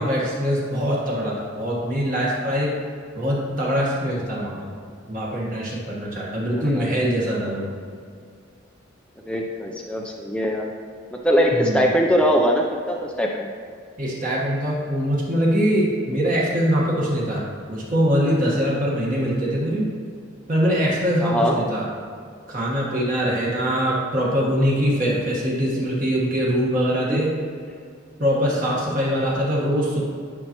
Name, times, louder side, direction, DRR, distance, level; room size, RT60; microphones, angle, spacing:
voice 1, 0.0-2.7 3.2-4.7 5.1-7.7 11.5-11.8 14.0-19.9 20.5-21.9 22.5-27.3 28.2-30.0, equal, 40° right, -5 dB, 1.3 m, -23 dB
voice 2, 6.6-6.9 9.3-10.7 11.1-13.5 21.2-21.6 27.0-27.2, equal, 5° left, 0 dB, 0.4 m, -22 dB
10.5 x 5.6 x 2.9 m, 2.2 s
head